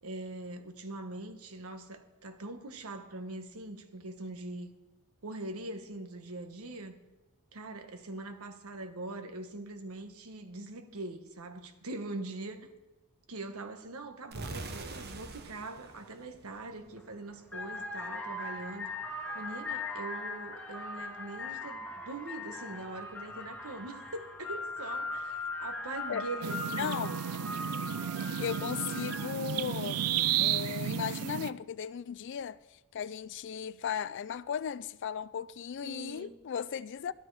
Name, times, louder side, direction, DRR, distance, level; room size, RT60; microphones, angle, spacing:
voice 1, 0.0-4.7 5.2-7.0 7.5-12.7 13.3-18.9 19.3-27.0 35.8-36.4, right 2 dB, 75° right, 1.2 m, -42 dB
sound 1, 14.3-17.2, right 2 dB, 45° right, 1.0 m, -44 dB
sound 2, 16.8-17.0 17.4-29.5, left 2 dB, 5° left, 1.5 m, -40 dB
sound 3, 26.4-31.5, right 10 dB, 90° right, 0.4 m, -33 dB
voice 2, 26.8-27.2 28.4-30.0 30.4-37.1, left 8 dB, 55° left, 0.3 m, -36 dB
12.5 x 11.5 x 4.8 m
head